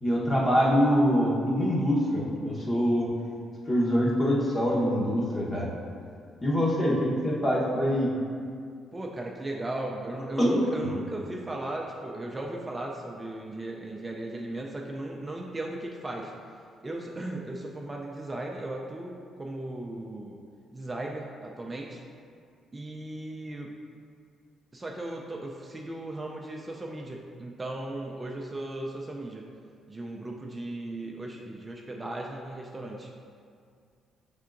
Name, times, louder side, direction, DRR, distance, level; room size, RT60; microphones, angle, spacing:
voice 1, 0.0-3.1 3.7-5.7 6.4-8.1 10.4-10.9, equal, 30° left, -4 dB, 1.0 m, -24 dB
voice 2, 8.9-16.3 16.8-20.4 20.7-22.0 22.7-23.7 24.7-29.5 29.9-33.1, right 1 dB, 20° right, -1 dB, 0.4 m, -36 dB
5.5 x 3.6 x 2.5 m, 2.3 s
cardioid pair, 90°, 0 cm